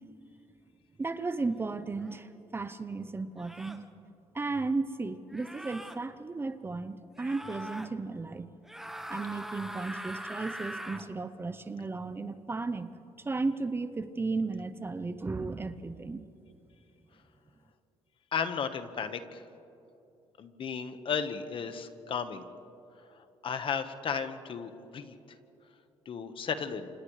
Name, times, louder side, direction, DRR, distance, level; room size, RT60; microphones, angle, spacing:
voice 1, 1.0-3.8 4.3-8.5 9.1-12.9 13.2-16.2, right 3 dB, 20° right, 12 dB, 0.8 m, -34 dB
sound 1, 2.0-2.2 3.4-3.9 5.3-6.0 7.2-7.9 8.6-11.1, equal, 5° right, 1.3 m, -42 dB
voice 2, 18.3-19.4 20.4-22.4 23.4-25.1 26.0-26.9, left 6 dB, 55° left, 9 dB, 1.3 m, -34 dB
29.5 x 26.5 x 3.3 m, 3.0 s
cardioid pair, 105°, 11 cm